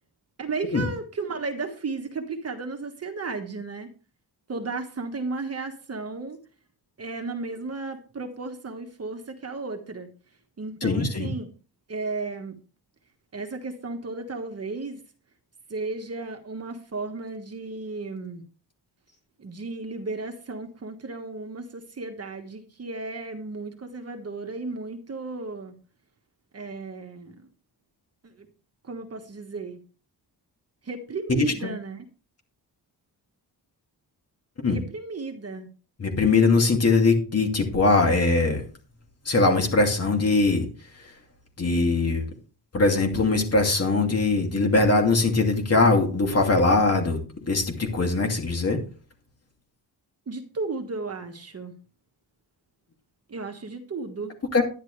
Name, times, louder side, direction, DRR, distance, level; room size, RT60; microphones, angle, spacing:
voice 1, 0.4-3.9 4.5-6.4 7.0-10.1 10.6-11.5 11.9-12.6 13.3-15.0 15.7-18.4 19.4-25.7 26.5-27.5 28.2-28.5 28.8-29.8 30.8-32.0 34.7-35.7 50.3-51.7 53.3-54.4, right 3 dB, 35° right, 5 dB, 1.4 m, -34 dB
voice 2, 10.8-11.3 31.4-31.7 34.6-34.8 36.0-38.6 39.2-40.7 40.9-41.1 41.6-42.3 42.7-47.2 47.5-48.8 54.5-54.6, left 3 dB, 35° left, 3 dB, 2.5 m, -21 dB
11.0 x 10.5 x 3.3 m, 0.37 s
wide cardioid pair, 170°, 41 cm